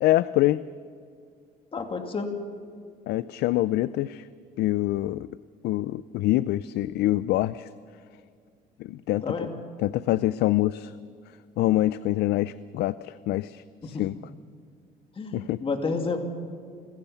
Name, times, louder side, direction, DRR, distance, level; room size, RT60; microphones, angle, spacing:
voice 1, 0.0-0.6 3.1-4.3 4.6-5.3 5.6-7.7 8.8-9.5 9.8-10.9 11.6-14.2 15.3-15.6, left 15 dB, 75° left, 17 dB, 0.5 m, -25 dB
voice 2, 1.7-2.3 9.2-9.5 13.9-14.0 15.2-16.2, left 4 dB, 30° left, 5 dB, 2.5 m, -30 dB
27.5 x 15.5 x 7.0 m, 2.3 s
cardioid pair, 110°, 17 cm